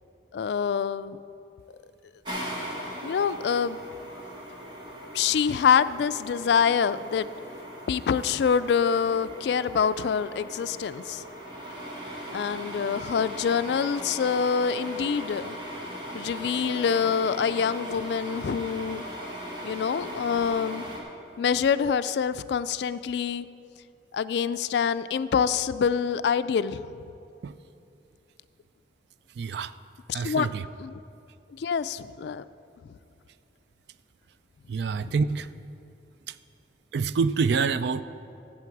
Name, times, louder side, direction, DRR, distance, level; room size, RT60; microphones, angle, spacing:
voice 1, 0.3-1.2 2.5-2.6 3.0-3.8 5.1-7.3 7.9-11.2 12.3-15.6 16.1-19.0 19.6-20.9 21.4-23.5 24.1-26.8 30.1-30.5 30.8-31.0 31.5-32.4 32.8-33.0 35.0-35.1, left 7 dB, 70° left, 15 dB, 0.3 m, -26 dB
sound 1, 2.2-21.0, equal, 25° right, 1.6 m, -39 dB
voice 2, 29.4-29.7 30.1-30.7 34.7-35.5 36.3-36.4 36.9-38.0, right 5 dB, 70° right, 14 dB, 0.4 m, -26 dB
14.0 x 7.8 x 4.7 m, 2.6 s
head